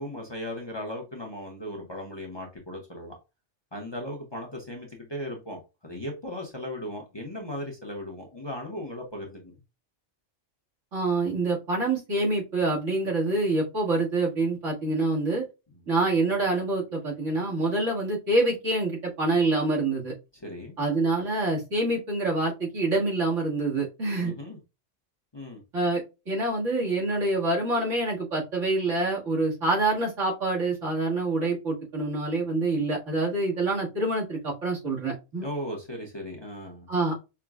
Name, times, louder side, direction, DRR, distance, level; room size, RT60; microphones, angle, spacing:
voice 1, 0.0-3.1 3.7-9.6 15.7-15.8 20.3-20.7 24.2-24.6 25.3-25.6 35.4-36.9, left 1 dB, 25° left, 0.7 m, -37 dB
voice 2, 10.9-15.4 15.9-20.1 20.8-24.3 25.7-35.5 36.9-37.3, right 2 dB, 80° right, 1.9 m, -26 dB
5.7 x 2.2 x 2.3 m
omnidirectional pair, 1.3 m